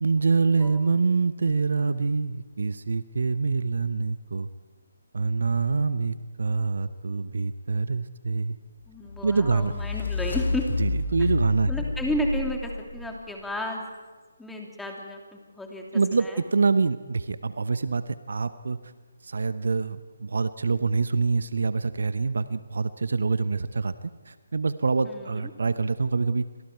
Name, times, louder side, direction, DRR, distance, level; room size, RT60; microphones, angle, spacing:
voice 1, 0.0-4.5 5.1-8.6 9.2-9.7 10.8-11.9 15.9-18.8 19.2-26.4, right 4 dB, 65° right, 13 dB, 1.0 m, -25 dB
voice 2, 8.9-10.6 11.7-13.9 14.4-15.8 16.2-16.3 25.1-25.4, left 1 dB, 5° left, 1 dB, 3.0 m, -32 dB
sound 1, 9.0-13.3, left 3 dB, 65° left, 4.1 m, -30 dB
30.0 x 26.0 x 4.7 m, 1.3 s
figure-of-eight pair, 145°, 0 cm